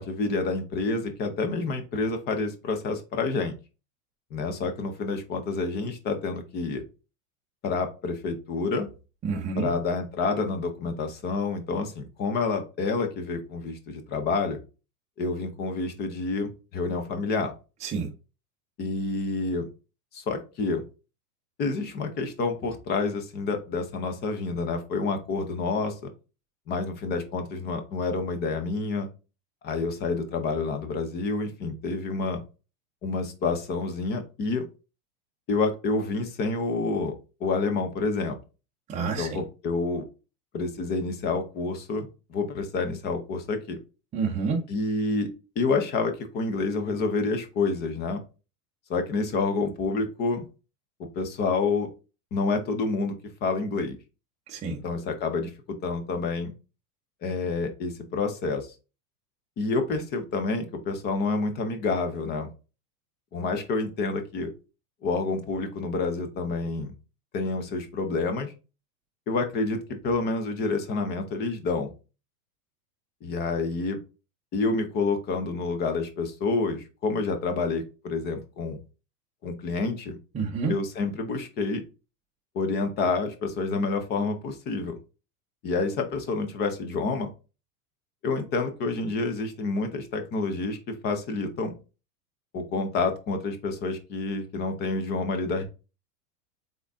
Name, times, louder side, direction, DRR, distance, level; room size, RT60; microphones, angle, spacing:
voice 1, 0.0-3.6 4.3-6.8 7.6-8.9 9.6-14.6 15.2-17.5 18.8-19.7 20.1-20.8 21.6-26.1 26.7-29.1 29.6-32.4 33.0-34.7 35.5-37.1 37.4-38.4 39.2-40.0 40.5-43.8 44.7-48.2 48.9-50.5 51.1-51.9 52.3-54.0 54.7-56.5 57.2-58.7 59.6-62.5 63.3-64.5 65.0-66.9 67.3-68.5 69.3-71.9 73.2-74.0 74.5-78.8 79.4-80.2 80.7-81.8 82.5-85.0 85.6-87.3 88.2-91.7 92.5-95.6, left 3 dB, 20° left, 0.6 m, -28 dB
voice 2, 9.2-9.7 17.8-18.1 38.9-39.4 44.1-44.6 54.5-54.8 80.3-80.7, right 5 dB, 15° right, 0.7 m, -28 dB
4.0 x 3.7 x 3.4 m
supercardioid pair, 155°, 47 cm